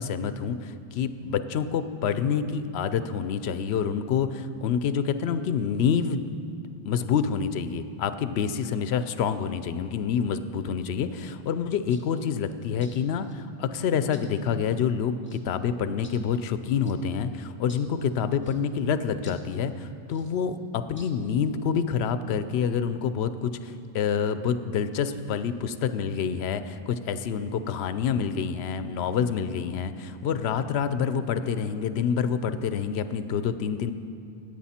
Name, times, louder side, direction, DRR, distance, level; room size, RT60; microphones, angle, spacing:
voice 1, 0.0-6.5 6.8-33.9, left 7 dB, 90° left, 12 dB, 0.8 m, -27 dB
sound 1, 11.9-12.1 12.8-13.4 14.1-14.3 15.2-15.5 16.0-16.2 16.8-17.0 17.7-17.9 18.4-18.6 19.2-19.5 20.1-20.3 21.0-21.1, left 2 dB, 10° left, 0.9 m, -52 dB
14.5 x 8.9 x 4.3 m, 2.6 s
omnidirectional pair, 1.0 m